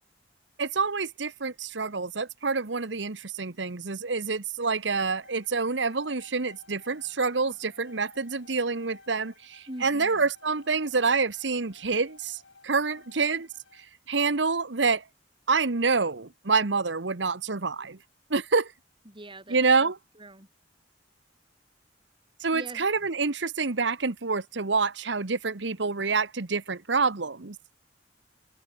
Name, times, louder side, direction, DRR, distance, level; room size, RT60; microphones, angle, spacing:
voice 1, 0.6-12.4 12.6-13.5 13.8-15.0 15.5-18.0 18.3-18.7 19.5-20.0 22.4-27.5, right 4 dB, 70° right, 1.2 m, -27 dB
sound 1, 5.2-13.9, left 3 dB, 85° left, 7.0 m, -55 dB
voice 2, 9.7-10.3 19.1-19.9 20.2-20.5 22.5-22.9, right 1 dB, 30° right, 5.7 m, -43 dB
open air
head